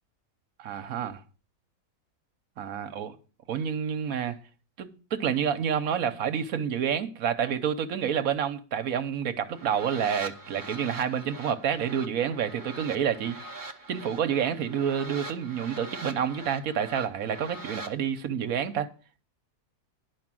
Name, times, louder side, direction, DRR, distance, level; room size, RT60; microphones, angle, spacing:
voice 1, 0.6-1.2 2.6-3.2 3.5-4.4 4.8-13.5 13.9-18.9, right 8 dB, 65° right, 1.2 m, -29 dB
sound 1, 9.4-17.9, right 2 dB, 25° right, 0.4 m, -42 dB
10.5 x 5.0 x 7.5 m
omnidirectional pair, 1.7 m